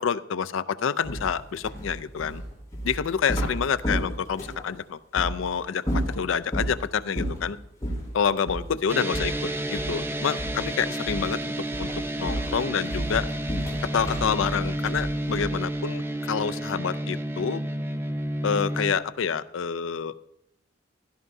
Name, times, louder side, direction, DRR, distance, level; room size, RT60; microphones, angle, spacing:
voice 1, 0.0-2.4 2.8-7.6 8.1-11.5 11.8-11.9 12.2-13.3 13.8-17.6 18.4-20.1, left 7 dB, 70° left, 15 dB, 0.4 m, -28 dB
sound 1, 1.0-4.7 5.1-5.3 5.8-6.8 7.1-7.5 7.8-8.0 8.4-8.7 9.1-10.1 10.4-10.7 11.1-11.4 11.7-15.6, equal, 20° left, 3.9 m, -31 dB
sound 2, 8.9-18.9, right 1 dB, 10° right, 0.6 m, -31 dB
16.5 x 12.0 x 2.7 m, 0.82 s
head